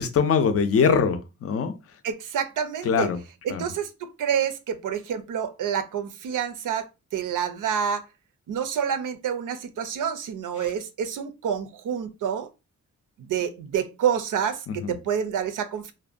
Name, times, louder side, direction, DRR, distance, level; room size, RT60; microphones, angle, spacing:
voice 1, 0.0-1.7 2.8-3.2 3.5-3.7 14.7-15.0, left 6 dB, 50° left, 0.4 m, -22 dB
voice 2, 2.0-3.1 3.4-6.9 7.1-8.0 8.5-12.5 13.2-15.9, right 8 dB, 75° right, 0.5 m, -28 dB
2.6 x 2.1 x 2.4 m
wide cardioid pair, 135°, 32 cm